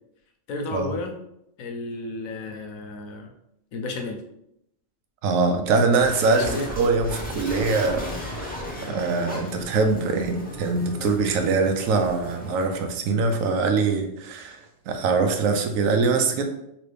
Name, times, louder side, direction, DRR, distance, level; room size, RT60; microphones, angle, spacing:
voice 1, 0.5-1.1 1.6-3.3 3.7-4.2 6.2-6.7, left 2 dB, 90° left, 3 dB, 1.1 m, -32 dB
voice 2, 5.2-8.0 8.3-16.4, right 4 dB, 80° right, 5 dB, 1.0 m, -23 dB
sound 1, 5.9-12.8, left 1 dB, 10° left, 0.5 m, -36 dB
2.9 x 2.9 x 3.2 m, 0.80 s
omnidirectional pair, 1.4 m